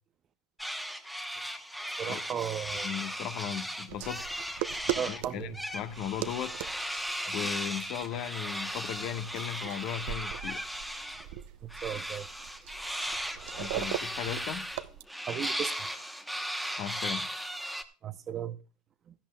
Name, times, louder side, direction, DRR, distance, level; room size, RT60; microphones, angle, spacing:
sound 1, 0.6-5.2 5.5-11.3 11.7-17.8, equal, ahead, 1.0 m, -37 dB
voice 1, 2.0-2.9 4.9-5.6 7.2-7.4 11.6-12.3 15.3-15.9 18.0-18.6 19.1-19.2, right 9 dB, 30° right, 0.7 m, -36 dB
voice 2, 2.7-4.2 5.0-6.5 7.3-10.7 13.6-14.6 16.8-17.3, left 9 dB, 50° left, 1.3 m, -37 dB
sound 2, 3.9-15.0, right 14 dB, 65° right, 0.7 m, -40 dB
16.5 x 13.5 x 2.3 m
supercardioid pair, 140°, 0 cm